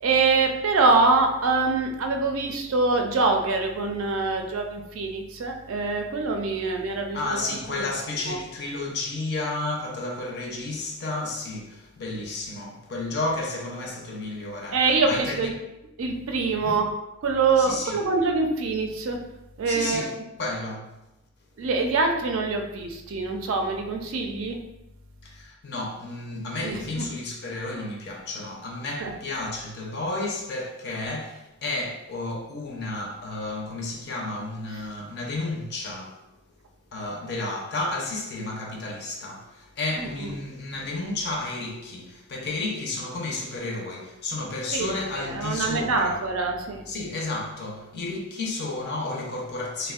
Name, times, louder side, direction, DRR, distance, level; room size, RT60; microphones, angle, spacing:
voice 1, 0.0-7.8 8.3-8.4 14.7-15.5 16.0-16.9 17.2-19.2 19.6-20.1 21.6-24.6 26.6-27.1 29.0-29.1 40.0-40.3 44.7-44.9 45.2-46.8, right 3 dB, 65° right, 0.4 m, -24 dB
voice 2, 7.1-15.5 16.5-16.8 17.6-18.0 19.7-20.1 20.4-20.9 25.2-36.2 36.9-46.2 46.9-49.9, left 2 dB, 50° left, 0.5 m, -32 dB
3.4 x 2.1 x 2.3 m
head